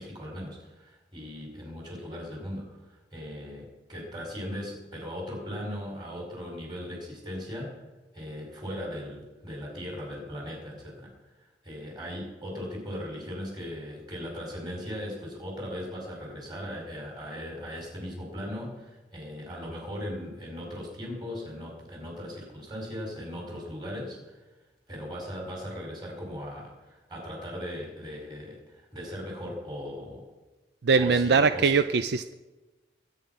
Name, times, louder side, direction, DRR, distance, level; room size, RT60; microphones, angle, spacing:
voice 1, 0.0-2.6 3.1-7.8 8.1-11.1 11.6-24.4 24.9-30.2 31.0-31.7, equal, 25° right, 0 dB, 5.2 m, -38 dB
voice 2, 30.8-32.3, right 5 dB, 60° right, 11 dB, 0.5 m, -22 dB
22.0 x 9.3 x 5.6 m, 1.2 s
head